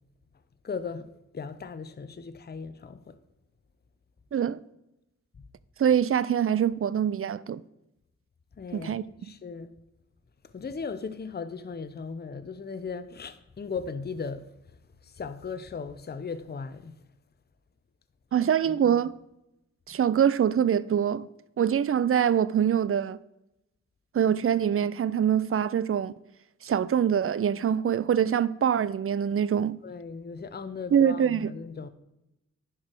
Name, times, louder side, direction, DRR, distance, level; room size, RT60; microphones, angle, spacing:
voice 1, 0.6-1.1 1.3-3.2 5.4-5.5 8.6-9.8 10.4-14.5 15.0-17.0 18.7-19.0 29.8-31.9, left 5 dB, 35° left, 0.6 m, -37 dB
voice 2, 5.8-7.6 8.7-9.0 18.3-19.1 19.9-21.3 21.6-23.2 24.1-26.1 26.6-29.8 30.9-31.5, right 8 dB, 45° right, 0.4 m, -24 dB
10.5 x 4.8 x 4.5 m
cardioid pair, 60°, 30 cm